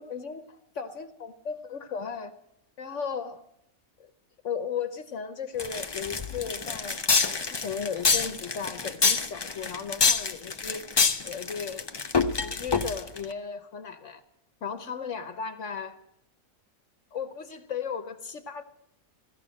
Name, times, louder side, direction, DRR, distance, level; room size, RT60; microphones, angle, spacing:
voice 1, 0.0-2.4 2.8-3.4 4.0-4.1 4.4-10.8 11.2-11.8 12.4-14.2 14.6-16.0 17.1-18.6, left 6 dB, 60° left, 8 dB, 1.2 m, -36 dB
sound 1, 5.6-13.2, left 4 dB, 35° left, 0.4 m, -26 dB
16.5 x 13.0 x 6.3 m, 0.79 s
omnidirectional pair, 1.5 m